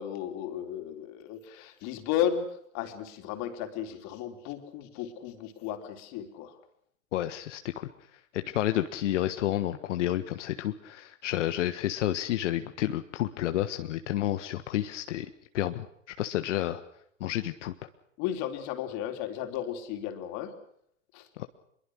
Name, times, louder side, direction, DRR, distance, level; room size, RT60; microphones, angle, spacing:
voice 1, 0.0-2.5 2.7-6.5 18.2-20.5 21.1-21.3, left 10 dB, 45° left, 6 dB, 4.0 m, -34 dB
voice 2, 7.1-7.9 8.3-15.3 15.5-15.9 16.2-16.8 17.2-17.7 21.4-21.5, left 13 dB, 60° left, 9 dB, 1.5 m, -30 dB
25.0 x 22.5 x 6.4 m, 0.71 s
hypercardioid pair, 100°, 40 cm